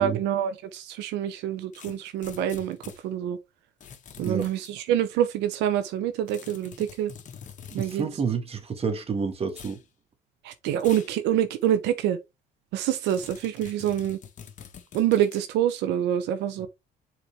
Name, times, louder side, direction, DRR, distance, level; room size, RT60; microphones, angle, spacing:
voice 1, 0.0-2.8 3.0-3.4 4.2-7.1 7.7-8.1 10.4-12.2 12.7-14.2 14.9-16.7, right 11 dB, 90° right, 0.8 m, -26 dB
sound 1, 1.7-3.0 3.8-4.7 6.3-8.0 9.5-9.8 10.8-11.2 11.6-11.7 13.1-15.5, left 7 dB, 50° left, 1.5 m, -46 dB
voice 2, 7.7-9.8, right 5 dB, 35° right, 1.7 m, -29 dB
7.2 x 4.1 x 3.5 m
cardioid pair, 110°, 17 cm